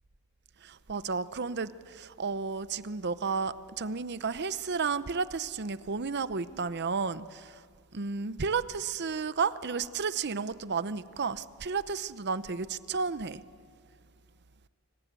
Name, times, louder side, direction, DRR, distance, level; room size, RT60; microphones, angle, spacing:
voice 1, 0.6-7.6 7.9-13.4, right 5 dB, 50° right, 0.8 m, -32 dB
25.5 x 25.5 x 8.3 m
head